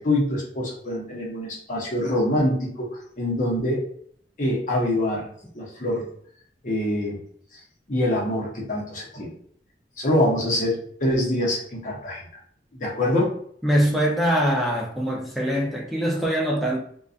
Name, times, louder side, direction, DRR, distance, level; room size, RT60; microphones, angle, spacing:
voice 1, 0.0-3.8 4.4-5.3 5.5-6.1 6.6-7.2 7.9-9.3 10.0-12.2 12.7-13.3, left 1 dB, 45° left, 0.8 m, -25 dB
voice 2, 13.6-16.8, equal, ahead, 0.4 m, -23 dB
2.5 x 2.2 x 2.4 m
head